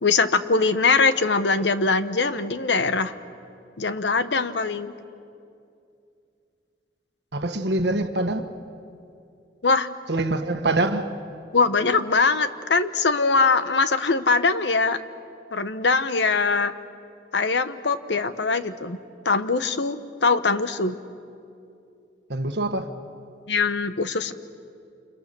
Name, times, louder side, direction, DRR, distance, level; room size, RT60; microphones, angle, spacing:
voice 1, 0.0-3.1 3.8-4.9 9.6-9.9 11.5-15.0 15.5-16.7 17.3-19.0 19.2-21.0 23.5-24.3, left 4 dB, 80° left, 1.1 m, -22 dB
voice 2, 7.3-8.5 10.1-11.1 22.3-22.9, right 2 dB, 70° right, 1.5 m, -24 dB
29.0 x 28.0 x 6.9 m
head